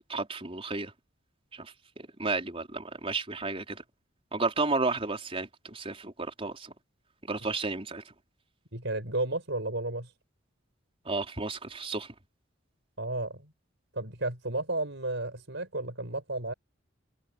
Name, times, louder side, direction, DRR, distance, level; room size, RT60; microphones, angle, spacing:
voice 1, 0.1-0.9 1.5-3.8 4.3-6.7 7.2-8.0 11.0-12.1, right 3 dB, 30° right, 4.6 m, -32 dB
voice 2, 8.7-10.1 13.0-13.5 13.9-16.5, right 2 dB, 65° right, 6.7 m, -33 dB
head